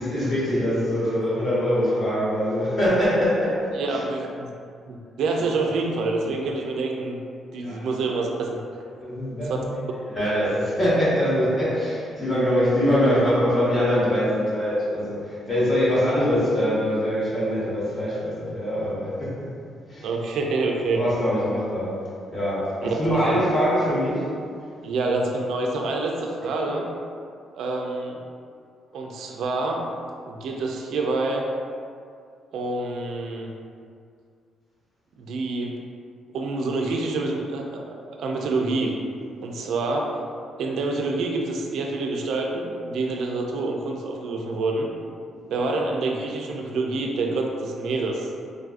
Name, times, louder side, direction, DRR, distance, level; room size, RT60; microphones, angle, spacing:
voice 1, 0.0-4.0 7.6-7.9 9.0-9.6 10.0-19.4 19.9-20.1 20.9-22.0 22.3-24.3 39.4-39.7 45.4-45.6, equal, 35° left, -8 dB, 1.3 m, -23 dB
voice 2, 3.7-4.5 4.9-7.2 7.5-8.6 9.4-9.6 20.0-21.0 22.8-23.4 24.8-26.9 27.5-28.2 28.9-29.8 30.2-31.5 32.5-33.5 35.2-35.8 36.3-37.6 38.1-39.0 39.4-40.2 40.6-44.9 45.5-48.3, right 3 dB, 75° right, 0 dB, 0.3 m, -27 dB
3.8 x 2.3 x 2.5 m, 2.3 s
cardioid pair, 90°, 0 cm